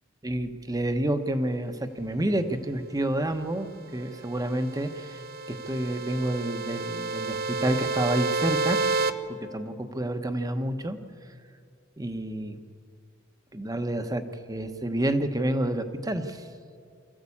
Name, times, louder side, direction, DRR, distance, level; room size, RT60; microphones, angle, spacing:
voice 1, 0.2-5.2 5.5-11.0 12.0-12.6 13.5-16.5, right 1 dB, 20° right, 8 dB, 1.1 m, -29 dB
sound 1, 4.2-9.1, right 3 dB, 50° right, 0.8 m, -30 dB
24.0 x 14.5 x 8.6 m, 2.2 s
head